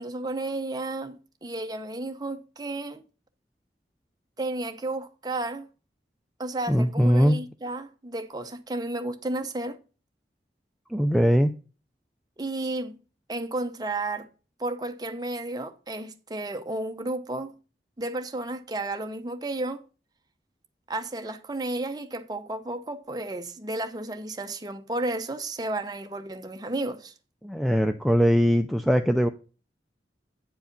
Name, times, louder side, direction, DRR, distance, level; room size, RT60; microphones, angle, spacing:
voice 1, 0.0-3.0 4.4-5.7 6.4-9.8 12.4-13.0 13.3-14.3 14.6-17.5 18.0-19.8 20.9-27.1, right 2 dB, 20° right, 0.7 m, -32 dB
voice 2, 6.7-7.4 10.9-11.5 27.4-29.3, equal, ahead, 0.3 m, -21 dB
9.0 x 4.8 x 5.1 m
head